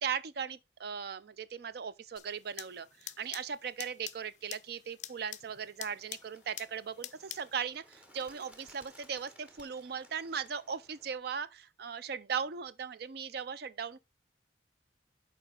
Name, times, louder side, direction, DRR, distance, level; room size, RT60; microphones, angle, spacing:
voice 1, 0.0-14.0, right 7 dB, 55° right, 0.4 m, -38 dB
sound 1, 2.1-7.6, left 12 dB, 40° left, 0.4 m, -47 dB
Bird, 5.9-11.2, equal, 5° right, 0.9 m, -60 dB
7.0 x 4.5 x 3.8 m
head